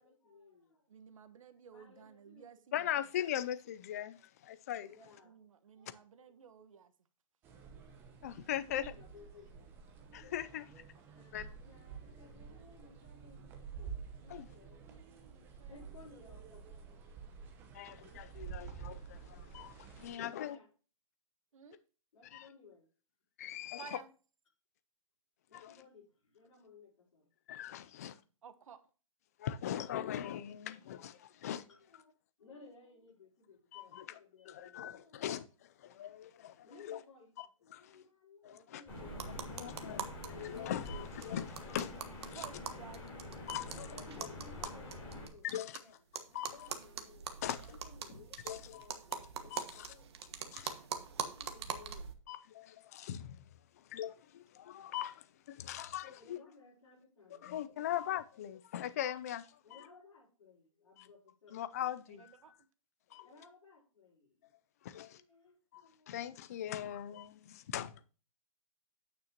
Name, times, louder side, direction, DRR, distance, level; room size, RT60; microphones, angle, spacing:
voice 1, 0.0-0.9 1.7-2.5 4.8-5.4 5.7-5.9 6.2-6.3 7.9-8.0 8.3-10.3 10.9-15.0 15.7-17.3 20.2-20.7 22.1-22.9 25.5-27.3 27.9-28.2 31.4-32.1 32.4-35.4 36.6-39.3 39.6-40.0 43.4-46.0 46.2-52.1 56.2-58.2 59.6-61.6 63.2-64.5 65.1-66.3, left 4 dB, 65° left, 4.9 m, -59 dB
voice 2, 0.9-2.9 5.2-6.9 14.8-15.8 16.1-16.4 21.5-21.8 23.8-24.1 28.4-28.8 42.3-43.3 62.1-62.5, right 7 dB, 70° right, 1.2 m, -55 dB
voice 3, 2.7-4.9 8.2-8.9 10.1-10.7 11.3-11.5 14.3-14.5 17.7-20.6 22.3-22.5 23.4-24.0 25.5-25.7 27.5-28.1 29.4-31.6 33.7-34.2 34.5-35.4 35.8-37.0 37.4-37.5 37.7-37.9 38.4-38.8 39.3-40.0 40.3-42.4 43.5-43.7 45.4-45.8 46.3-46.7 47.4-47.6 48.5-48.8 49.5-49.6 50.5-50.7 52.3-53.4 53.9-56.4 57.4-59.5 61.0-61.1 61.5-62.3 63.1-63.3 64.8-65.2 65.7-65.8 66.1-67.9, left 11 dB, 30° left, 0.4 m, -40 dB
sound 1, 7.4-20.1, right 6 dB, 15° right, 0.9 m, -50 dB
sound 2, 38.9-45.3, left 1 dB, 10° left, 3.5 m, -46 dB
sound 3, 39.1-40.3 40.6-40.7 40.9-41.0 41.2-45.8 46.1-52.1, right 7 dB, 50° right, 1.3 m, -42 dB
9.2 x 8.5 x 2.9 m
hypercardioid pair, 170°, 17 cm